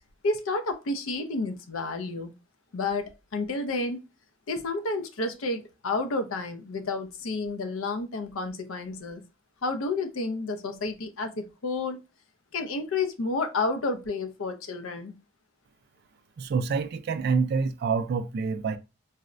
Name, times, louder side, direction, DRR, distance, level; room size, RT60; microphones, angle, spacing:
voice 1, 0.2-2.3 2.7-4.0 4.5-9.2 9.6-12.0 12.5-15.1, left 3 dB, 80° left, 0.5 m, -30 dB
voice 2, 16.4-18.8, right 5 dB, 50° right, 0.3 m, -27 dB
4.0 x 2.1 x 2.4 m
head